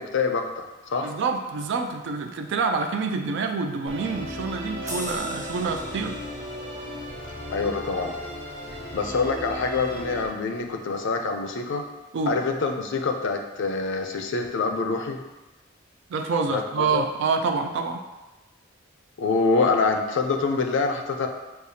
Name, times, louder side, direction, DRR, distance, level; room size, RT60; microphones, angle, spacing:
voice 1, 0.0-1.2 7.5-8.1 8.9-11.8 12.3-15.2 16.5-17.0 19.2-21.3, left 4 dB, 65° left, 5 dB, 0.4 m, -25 dB
voice 2, 1.0-6.2 12.1-12.4 16.1-18.0, right 4 dB, 60° right, 4 dB, 0.4 m, -27 dB
Musical instrument, 3.9-10.3, equal, 35° right, 1.2 m, -36 dB
sound 1, 4.9-9.8 10.3-10.4, equal, 15° right, 0.9 m, -42 dB
6.4 x 2.4 x 2.7 m, 1.1 s
head